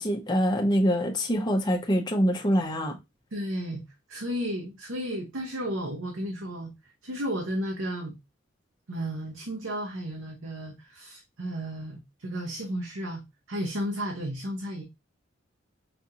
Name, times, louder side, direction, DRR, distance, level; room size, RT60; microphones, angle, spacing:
voice 1, 0.0-3.0, equal, 20° left, 0.6 m, -25 dB
voice 2, 3.3-3.8 4.1-8.1 8.9-13.2 13.5-14.8, equal, 75° right, 0.8 m, -33 dB
5.0 x 2.5 x 2.7 m
head